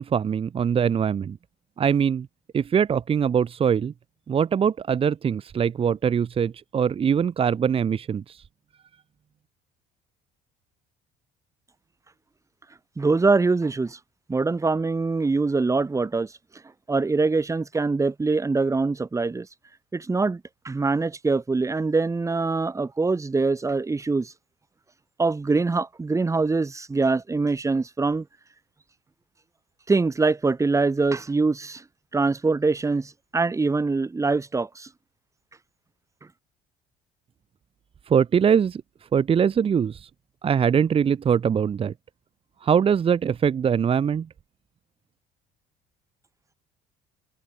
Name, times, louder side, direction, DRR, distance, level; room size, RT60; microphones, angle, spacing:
voice 1, 0.0-1.4 1.8-2.3 2.5-3.9 4.3-8.4 38.1-38.8 39.1-40.1 40.4-41.9 42.6-44.3, right 7 dB, 35° right, 1.3 m, -22 dB
voice 2, 13.0-14.0 14.3-16.3 16.9-19.5 19.9-24.3 25.2-28.3 29.9-31.8 32.1-34.9, right 3 dB, 20° right, 4.6 m, -23 dB
cardioid pair, 110°, 17 cm